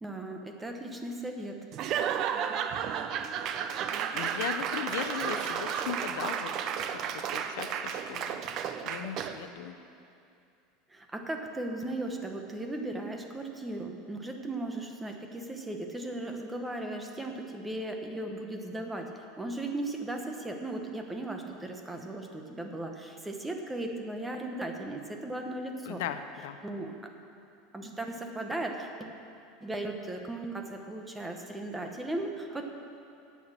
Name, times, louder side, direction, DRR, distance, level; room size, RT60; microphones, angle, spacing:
voice 1, 0.0-1.6 5.3-5.4 10.9-26.0 26.6-27.1 27.7-29.1 29.6-32.7, right 2 dB, 10° right, 3 dB, 0.8 m, -37 dB
Laughter / Applause / Crowd, 1.7-9.5, right 8 dB, 35° right, 0.5 m, -33 dB
voice 2, 4.1-6.5 6.9-8.4 8.8-9.7 25.8-26.6, left 9 dB, 75° left, 9 dB, 0.6 m, -38 dB
10.5 x 8.4 x 7.3 m, 2.6 s
supercardioid pair, 165°, 0 cm